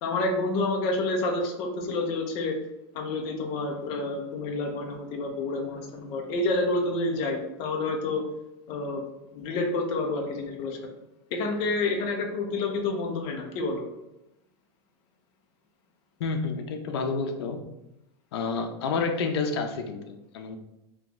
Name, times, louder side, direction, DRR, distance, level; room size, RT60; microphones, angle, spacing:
voice 1, 0.0-2.6 2.9-8.2 8.7-9.0 9.3-10.8 11.3-13.8, left 2 dB, 35° left, 2 dB, 0.5 m, -29 dB
voice 2, 16.2-17.6 18.3-20.6, left 4 dB, 80° left, 5 dB, 0.6 m, -29 dB
3.4 x 2.9 x 3.9 m, 0.91 s
supercardioid pair, 175°, 13 cm